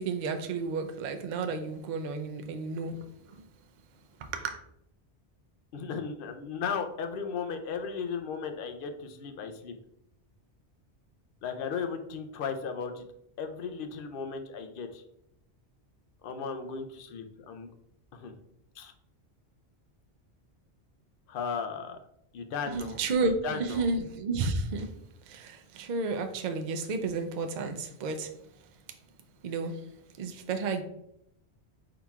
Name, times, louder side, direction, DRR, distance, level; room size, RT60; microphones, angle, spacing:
voice 1, 0.0-3.4 4.2-4.6 22.7-24.9 25.3-28.3 29.4-29.8 30.2-30.8, right 3 dB, 55° right, 6 dB, 0.5 m, -32 dB
voice 2, 5.7-9.7 11.4-13.0 13.4-15.0 16.2-17.7 18.1-18.3 18.8-18.9 21.3-22.0 22.3-23.0 23.2-23.9, left 6 dB, 60° left, 6 dB, 0.7 m, -36 dB
4.2 x 3.9 x 2.3 m, 0.77 s
omnidirectional pair, 1.1 m